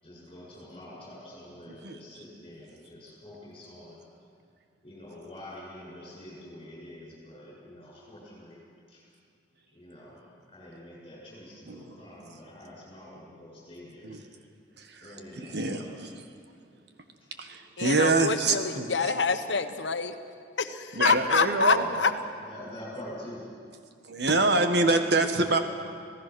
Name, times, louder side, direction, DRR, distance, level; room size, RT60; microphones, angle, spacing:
voice 1, 0.0-4.0 4.8-8.6 8.9-9.0 9.7-14.2 15.0-16.1 17.2-17.3 21.7-22.0 22.4-23.4 25.3-25.4, left 1 dB, 30° left, -5 dB, 7.2 m, -46 dB
voice 2, 15.4-16.1 17.4-18.9 20.9-21.8 24.1-25.6, right 3 dB, 65° right, 6 dB, 1.7 m, -25 dB
voice 3, 17.8-20.1 20.6-22.1, left 5 dB, 80° left, 9 dB, 1.2 m, -26 dB
26.0 x 17.5 x 6.4 m, 2.3 s
head